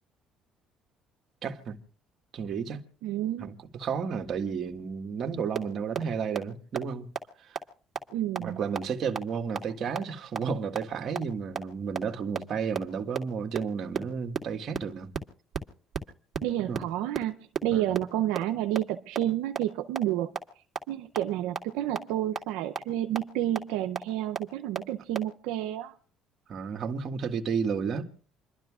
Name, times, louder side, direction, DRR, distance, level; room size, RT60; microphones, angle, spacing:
voice 1, 1.4-1.8 2.3-2.8 3.4-7.1 7.4-7.6 8.4-15.1 16.6-16.8 17.7-17.8 26.5-28.1, right 6 dB, 55° right, 1.7 m, -32 dB
voice 2, 3.0-3.5 8.1-8.6 16.4-26.0, right 13 dB, 85° right, 0.6 m, -30 dB
sound 1, 5.5-5.6 5.9-6.0 6.3-6.4 6.8-6.9 7.2-7.3 7.6-7.7 8.0-8.1 8.4-8.5 8.8-8.9 9.2-9.3 9.6-9.7 10.0-10.1 10.4-10.5 10.8-10.9 11.2-11.3 11.6-11.7 12.0-12.1 12.3-12.4 12.7-12.8 13.2-13.3 13.5-13.6 13.9-14.0 14.3-14.4 14.7-14.8 15.1-15.2 15.5-15.6 15.9-16.0 16.3-16.4 16.7-16.8 17.2-17.3 17.6-17.7 17.9-18.0 18.4-18.5 18.7-18.8 19.1-19.2 19.5-19.6 20.0-20.1 20.4-20.5 20.8-20.9 21.2-21.3 21.6-21.7 22.0-22.1 22.4-22.5 22.8-22.9 23.2-23.3 23.6-23.7 24.0-24.1 24.4-24.5 24.7-24.8 25.1-25.2, right 7 dB, 40° right, 2.3 m, -29 dB
28.5 x 12.5 x 2.4 m
supercardioid pair, 85°, 0 cm